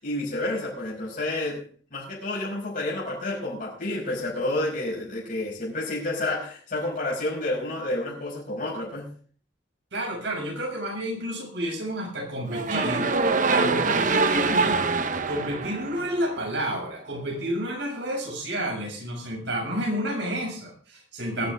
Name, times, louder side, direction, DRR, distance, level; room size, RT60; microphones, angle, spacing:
voice 1, 0.0-1.6 1.9-9.1, left 2 dB, 50° left, -4 dB, 5.4 m, -30 dB
voice 2, 9.9-14.9 15.3-21.5, equal, 70° right, 1 dB, 6.9 m, -30 dB
sound 1, 12.5-16.7, right 4 dB, 45° right, 1.0 m, -24 dB
19.5 x 12.0 x 3.6 m, 0.44 s
head